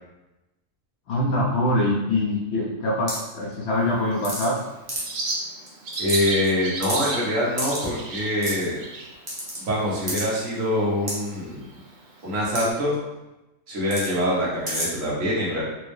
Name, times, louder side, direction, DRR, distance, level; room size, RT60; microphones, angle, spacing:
voice 1, 1.1-4.6, left 1 dB, 65° left, -2 dB, 0.8 m, -24 dB
sound 1, 3.1-3.3 4.2-4.6 4.9-5.2 5.7-5.8 5.9-6.5 6.8-7.1 7.6-7.9 8.4-8.6 9.3-9.6 10.1-10.2 11.1-11.2 12.5-12.6 12.9-13.0 13.9-14.1 14.7-14.9, equal, 20° right, 0.8 m, -29 dB
Bird, 3.7-12.7, right 2 dB, 50° right, 0.6 m, -36 dB
voice 2, 6.0-8.8 9.6-11.7 12.2-12.9 13.7-15.6, left 1 dB, 75° right, -5 dB, 1.5 m, -24 dB
4.4 x 2.1 x 3.1 m, 1.0 s
omnidirectional pair, 1.4 m